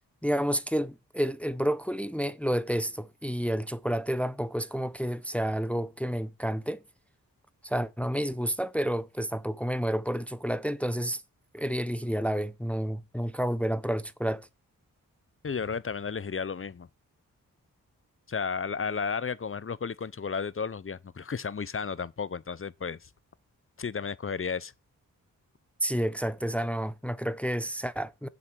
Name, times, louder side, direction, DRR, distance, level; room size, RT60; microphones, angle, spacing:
voice 1, 0.2-6.8 7.6-11.2 11.5-14.5 25.8-28.3, equal, 5° left, 0.8 m, -30 dB
voice 2, 15.4-16.9 18.3-23.0 23.8-24.7, left 5 dB, 35° left, 0.7 m, -33 dB
7.7 x 6.3 x 7.6 m
cardioid pair, 40°, 35 cm